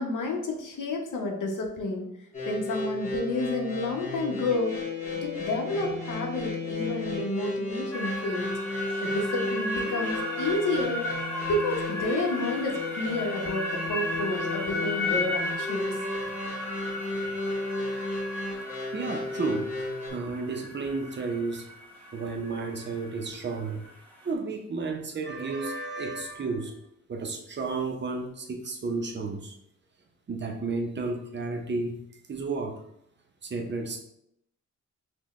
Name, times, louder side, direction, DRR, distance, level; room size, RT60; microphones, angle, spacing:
voice 1, 0.0-2.1 2.5-4.8 5.1-8.5 9.0-11.1 11.5-16.0, left 2 dB, 80° left, 1 dB, 0.9 m, -30 dB
sound 1, 2.3-20.1, left 2 dB, 25° left, 1.1 m, -34 dB
sound 2, 7.9-24.3, left 1 dB, 5° left, 0.8 m, -35 dB
voice 2, 18.9-21.7 22.1-23.9 24.2-26.8 27.1-29.5 30.3-32.0 32.3-32.8 33.4-34.0, right 3 dB, 35° right, 3 dB, 0.6 m, -32 dB
6.1 x 2.2 x 3.0 m, 0.76 s
wide cardioid pair, 170°, 31 cm